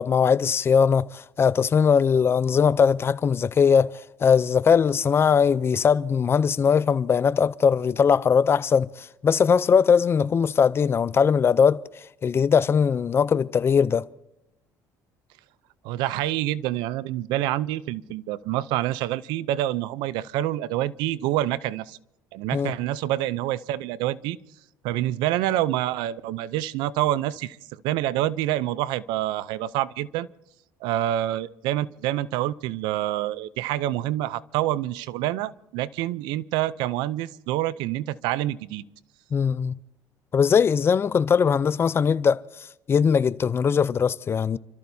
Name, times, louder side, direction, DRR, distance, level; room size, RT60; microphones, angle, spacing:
voice 1, 0.0-11.8 12.2-14.0 22.5-22.7 39.3-39.7 40.3-42.4 42.9-44.6, left 6 dB, 35° left, 0.5 m, -20 dB
voice 2, 15.8-22.0 22.3-24.4 24.8-27.6 27.8-30.3 30.8-38.8, right 14 dB, 85° right, 0.6 m, -27 dB
29.5 x 14.0 x 2.7 m
cardioid pair, 110°, 7 cm